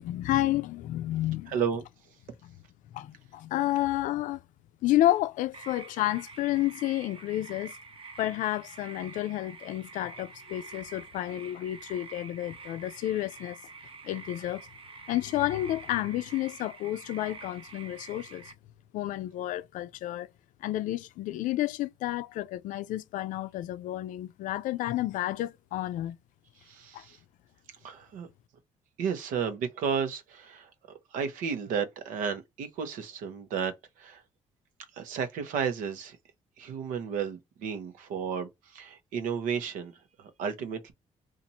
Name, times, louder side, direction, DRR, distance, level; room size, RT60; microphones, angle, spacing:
voice 1, 0.0-1.6 2.9-4.4 4.8-7.7 8.2-13.6 14.0-14.7 15.1-18.5 18.9-20.3 20.6-26.2 26.9-27.0, left 14 dB, 80° left, 0.4 m, -30 dB
voice 2, 1.5-1.8 26.6-27.2 27.8-28.3 29.0-30.7 31.1-34.2 34.9-36.2 36.6-39.9 40.2-40.9, right 7 dB, 85° right, 0.8 m, -33 dB
sound 1, 5.5-18.5, right 4 dB, 45° right, 0.8 m, -47 dB
2.9 x 2.5 x 4.1 m
cardioid pair, 80°, 13 cm